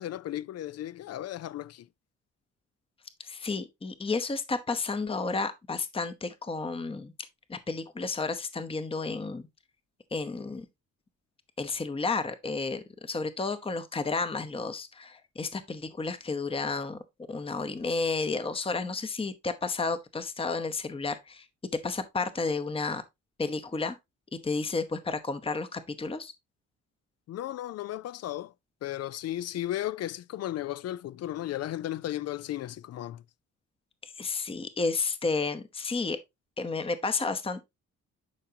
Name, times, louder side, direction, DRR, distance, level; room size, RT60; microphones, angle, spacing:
voice 1, 0.0-1.9 27.3-28.5 28.8-33.2, left 13 dB, 55° left, 0.4 m, -35 dB
voice 2, 3.2-7.1 7.5-9.5 10.1-10.7 11.6-17.0 17.3-21.5 21.8-23.0 23.4-24.0 24.4-26.3 34.0-36.2 36.6-37.6, left 4 dB, 20° left, 0.9 m, -32 dB
10.5 x 4.6 x 2.8 m
cardioid pair, 90°, 30 cm